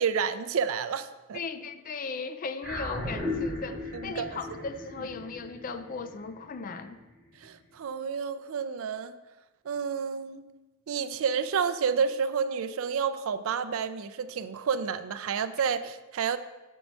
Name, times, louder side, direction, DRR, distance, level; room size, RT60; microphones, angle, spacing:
voice 1, 0.0-1.4 3.9-4.6 7.4-9.2 9.6-10.4 10.9-16.4, right 6 dB, 65° right, 12 dB, 0.4 m, -30 dB
voice 2, 1.3-7.0, left 4 dB, 40° left, 10 dB, 0.4 m, -37 dB
sound 1, 2.6-7.2, left 2 dB, 5° right, 2.4 m, -36 dB
5.3 x 4.5 x 6.2 m, 1.1 s
head